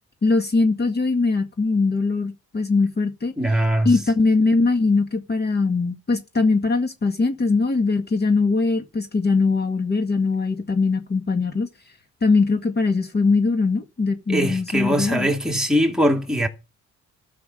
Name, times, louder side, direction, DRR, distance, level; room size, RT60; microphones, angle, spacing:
voice 1, 0.2-3.3 3.9-11.7 12.2-15.3, left 3 dB, 35° left, 1.8 m, -21 dB
voice 2, 3.4-4.0 14.3-16.5, equal, ahead, 2.7 m, -21 dB
13.0 x 6.0 x 7.7 m
cardioid pair, 90°, 30 cm